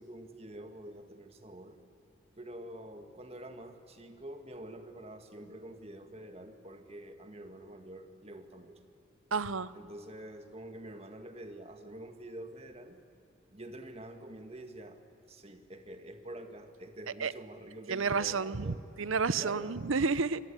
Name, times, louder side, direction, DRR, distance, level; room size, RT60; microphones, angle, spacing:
voice 1, 0.0-1.8 2.4-8.8 9.7-13.0 13.5-15.0 15.3-18.8 19.3-19.8, right 1 dB, 30° right, 6 dB, 1.9 m, -47 dB
voice 2, 9.3-9.7 17.2-17.3 17.9-20.4, right 4 dB, 75° right, 16 dB, 0.8 m, -30 dB
27.0 x 21.5 x 9.9 m, 2.6 s
head